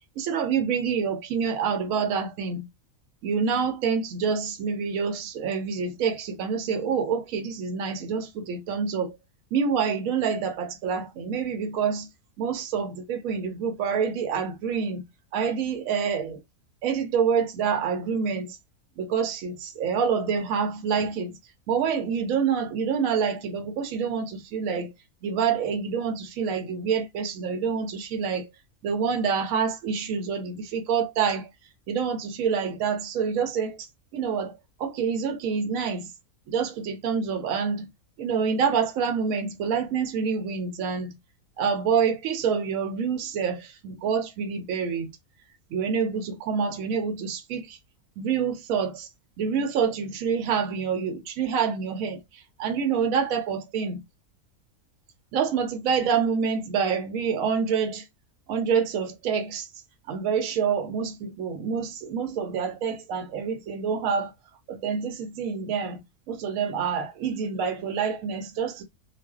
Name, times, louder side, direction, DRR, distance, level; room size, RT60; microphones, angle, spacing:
voice 1, 0.2-2.7 3.2-9.1 9.5-12.1 12.4-15.0 15.3-16.4 16.8-18.6 19.0-21.4 21.7-24.9 25.2-28.5 28.8-31.5 31.9-33.9 34.1-34.5 34.8-36.1 36.5-37.9 38.2-41.1 41.6-45.1 45.7-47.8 48.2-49.1 49.4-54.0 55.3-58.1 58.5-59.7 60.1-64.3 64.7-68.8, right 6 dB, 75° right, 0.9 m, -27 dB
2.4 x 2.2 x 2.3 m
omnidirectional pair, 1.5 m